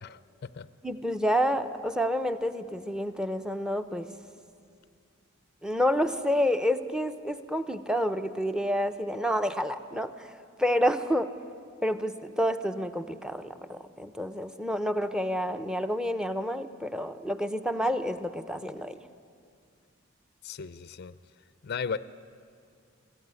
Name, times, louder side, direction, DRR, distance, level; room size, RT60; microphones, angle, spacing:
voice 1, 0.0-0.7 20.4-21.1 21.6-22.0, left 5 dB, 50° left, 15 dB, 0.5 m, -36 dB
voice 2, 0.8-4.1 5.6-11.3 11.8-19.0, equal, 5° right, 10 dB, 0.7 m, -29 dB
22.5 x 14.5 x 9.5 m, 2.2 s
head